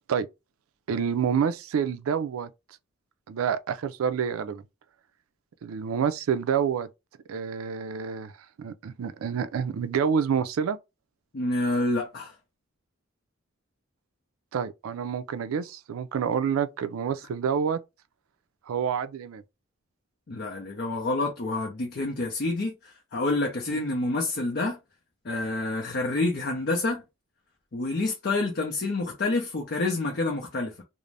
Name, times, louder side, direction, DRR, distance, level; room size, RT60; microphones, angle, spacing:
voice 1, 0.9-2.5 3.3-4.6 5.6-6.9 7.3-8.3 8.6-10.8 14.5-17.8 18.7-19.4 23.7-23.8, right 7 dB, 85° right, 0.4 m, -28 dB
voice 2, 11.3-12.3 20.3-24.8 25.2-27.0 27.7-30.8, left 2 dB, 50° left, 0.5 m, -28 dB
2.5 x 2.0 x 3.2 m
head